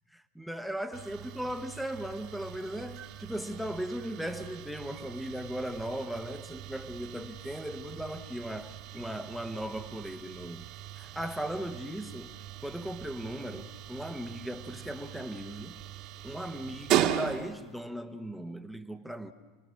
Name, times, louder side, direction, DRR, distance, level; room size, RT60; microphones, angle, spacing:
voice 1, 0.1-10.6 10.9-15.8 16.2-19.3, right 1 dB, ahead, 1.1 m, -37 dB
sound 1, 0.9-17.8, right 11 dB, 45° right, 1.6 m, -38 dB
30.0 x 19.5 x 6.4 m
supercardioid pair, 135°, 0 cm